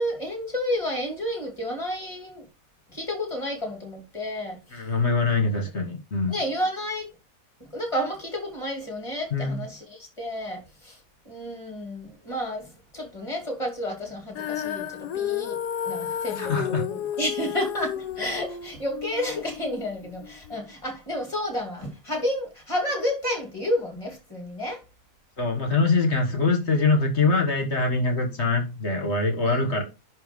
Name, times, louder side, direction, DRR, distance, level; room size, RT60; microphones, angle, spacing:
voice 1, 0.0-2.4 2.9-4.6 6.3-7.1 7.6-11.0 11.2-15.6 15.8-24.8 29.5-29.6, equal, 20° left, 2.7 m, -31 dB
voice 2, 4.7-6.4 9.3-9.6 16.4-16.8 25.4-29.8, left 3 dB, 45° left, 1.9 m, -23 dB
Female singing, 14.4-20.6, left 10 dB, 90° left, 1.4 m, -32 dB
10.5 x 3.5 x 5.4 m
omnidirectional pair, 1.7 m